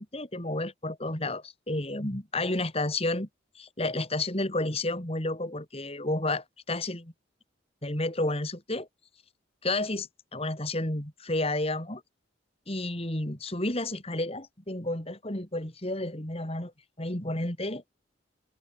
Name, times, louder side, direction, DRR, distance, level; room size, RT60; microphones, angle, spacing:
voice 1, 0.0-3.3 3.5-7.1 7.8-8.9 9.6-12.0 12.7-16.7 17.0-17.8, left 2 dB, 30° left, 3.3 m, -31 dB
head